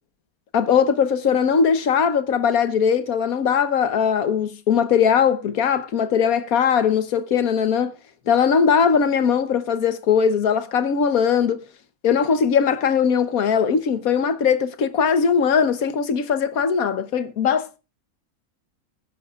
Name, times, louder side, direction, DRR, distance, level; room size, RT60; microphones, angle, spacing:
voice 1, 0.5-7.9 8.3-11.6 12.0-17.8, left 7 dB, 70° left, 1.4 m, -20 dB
20.5 x 10.5 x 2.4 m
omnidirectional pair, 1.6 m